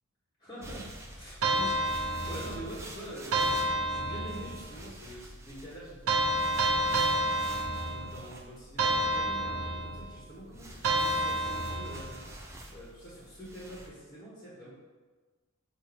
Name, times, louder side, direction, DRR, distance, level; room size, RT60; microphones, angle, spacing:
voice 1, 0.4-6.4 7.6-12.3 12.7-14.7, right 1 dB, 20° left, -9 dB, 1.4 m, -45 dB
sound 1, 0.6-13.9, right 1 dB, 15° right, 0.6 m, -47 dB
sound 2, 1.4-2.7 3.3-4.6 6.1-8.3 8.8-10.1 10.8-12.1, right 1 dB, 75° right, 0.6 m, -29 dB
6.5 x 2.8 x 5.2 m, 1.3 s
head